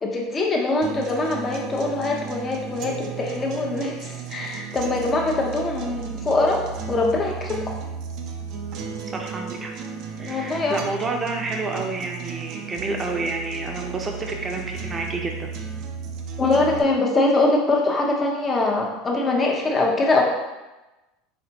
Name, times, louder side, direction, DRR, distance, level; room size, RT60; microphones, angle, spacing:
voice 1, 0.0-6.6 6.9-7.8 10.2-10.8 16.4-20.2, left 2 dB, 25° left, 0 dB, 0.9 m, -23 dB
sound 1, 0.8-16.8, right 6 dB, 60° right, 0.6 m, -34 dB
voice 2, 9.1-9.7 10.2-15.5, right 3 dB, 25° right, 2 dB, 0.8 m, -29 dB
4.2 x 4.1 x 2.9 m, 1.1 s
supercardioid pair, 110°, 0 cm